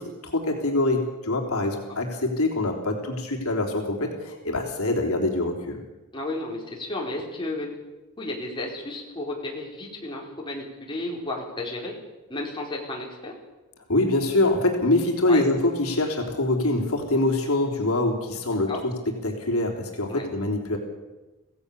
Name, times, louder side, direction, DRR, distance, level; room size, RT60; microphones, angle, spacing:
voice 1, 0.0-5.8 13.9-18.9 19.2-20.8, left 2 dB, 70° left, 1 dB, 3.5 m, -24 dB
voice 2, 6.1-7.7 8.2-11.9 12.3-13.3 15.2-15.4 18.7-18.8 20.1-20.2, left 2 dB, 20° left, -2 dB, 4.4 m, -33 dB
25.5 x 16.5 x 6.9 m, 1.1 s
head